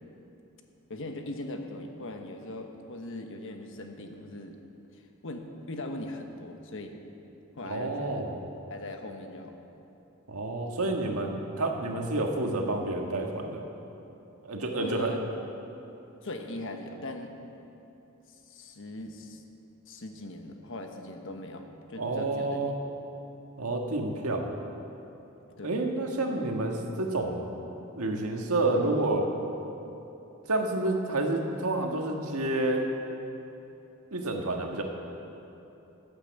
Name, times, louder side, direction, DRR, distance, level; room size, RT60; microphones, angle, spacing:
voice 1, 0.9-4.6 5.2-6.9 7.6-8.2 8.7-9.5 14.7-15.2 16.2-17.6 18.3-19.4 19.9-22.6 25.6-25.8, left 1 dB, 60° left, 4 dB, 1.2 m, -40 dB
voice 2, 7.6-8.4 10.3-13.6 14.4-15.2 22.0-22.7 23.6-24.5 25.6-27.6 27.9-29.3 30.5-32.9 34.1-34.8, right 2 dB, 85° right, 2 dB, 1.6 m, -29 dB
15.0 x 8.8 x 7.1 m, 3.0 s
head